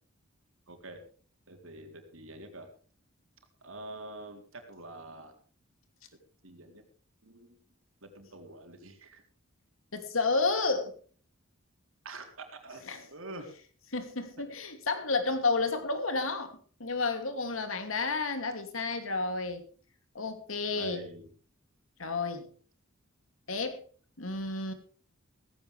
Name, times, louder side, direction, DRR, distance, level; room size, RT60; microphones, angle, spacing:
voice 1, 0.7-1.0 1.5-2.7 3.6-5.3 6.4-6.8 7.2-7.6 8.0-9.2 12.0-13.5 20.7-21.3, right 2 dB, 75° right, 3.9 m, -46 dB
voice 2, 9.9-10.9 12.8-13.1 13.9-19.6 20.1-21.1 22.0-22.5 23.5-23.8 24.2-24.7, left 3 dB, 75° left, 2.8 m, -31 dB
17.0 x 16.0 x 3.4 m
head